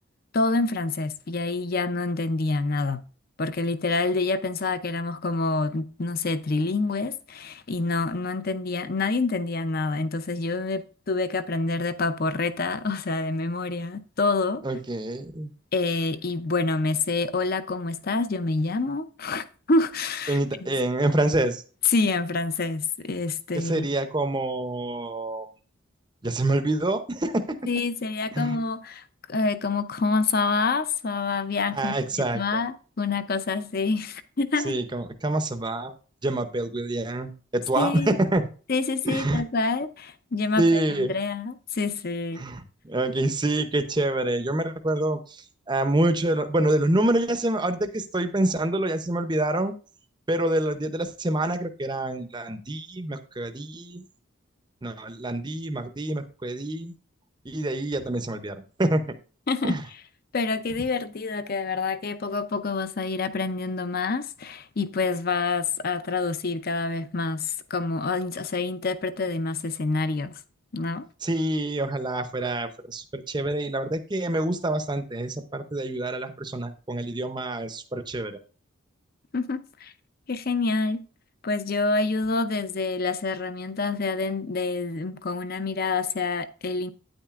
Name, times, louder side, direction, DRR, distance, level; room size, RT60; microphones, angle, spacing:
voice 1, 0.3-3.0 3.4-14.6 15.7-20.7 21.9-23.9 27.7-29.0 29.3-32.0 32.3-34.8 37.8-38.2 38.7-42.4 59.5-59.7 60.3-70.4 70.7-71.1 79.3-79.9 80.3-81.1 81.4-86.9, left 3 dB, 45° left, 0.6 m, -27 dB
voice 2, 14.6-15.5 20.3-21.6 23.5-25.5 26.2-27.6 28.3-28.6 31.7-32.4 34.6-35.9 36.2-38.4 39.0-39.4 40.6-41.1 42.4-49.7 50.3-54.0 54.8-56.9 57.4-59.0 59.6-59.8 71.2-78.4, right 1 dB, 20° right, 0.6 m, -26 dB
9.2 x 8.9 x 2.5 m
head